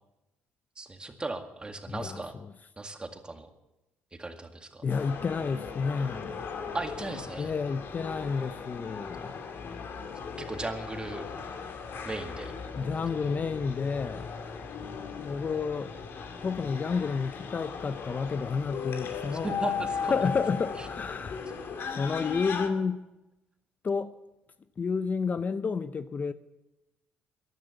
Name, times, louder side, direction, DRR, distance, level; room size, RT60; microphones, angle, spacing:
voice 1, 0.8-2.3 2.8-3.5 4.1-4.8 6.7-7.5 10.4-11.2 12.1-12.5 19.4-20.2 20.8-20.9, right 2 dB, 20° right, 2.0 m, -37 dB
voice 2, 1.9-2.5 4.8-6.4 7.4-9.4 12.7-14.3 15.2-15.9 16.4-19.5 20.1-21.5 21.9-23.0 23.8-24.1 24.8-26.3, left 5 dB, 40° left, 0.7 m, -30 dB
sound 1, 4.9-22.7, left 6 dB, 55° left, 2.3 m, -37 dB
15.0 x 11.0 x 7.9 m
supercardioid pair, 75°, 4 cm